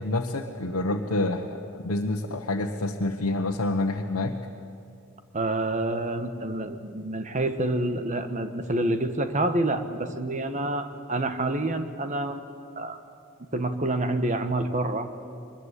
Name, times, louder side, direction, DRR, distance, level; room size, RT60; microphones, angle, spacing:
voice 1, 0.0-4.4, left 2 dB, 85° left, 1 dB, 1.2 m, -28 dB
voice 2, 5.3-12.4 12.8-13.0 13.5-15.1, right 2 dB, 35° right, 8 dB, 1.3 m, -27 dB
22.5 x 20.5 x 8.3 m, 2.4 s
head